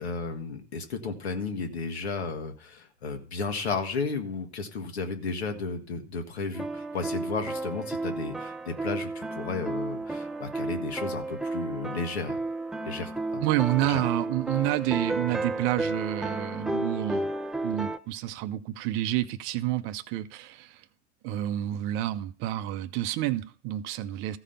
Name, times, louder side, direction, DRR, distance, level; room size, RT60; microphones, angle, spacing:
voice 1, 0.0-12.4 12.9-13.4 13.8-14.0, left 4 dB, 70° left, 1.8 m, -33 dB
sound 1, 6.5-18.0, right 2 dB, ahead, 0.4 m, -32 dB
voice 2, 13.4-17.3 17.6-20.8 21.2-24.4, right 14 dB, 35° right, 0.7 m, -29 dB
14.5 x 5.0 x 5.6 m
figure-of-eight pair, 85°, 34 cm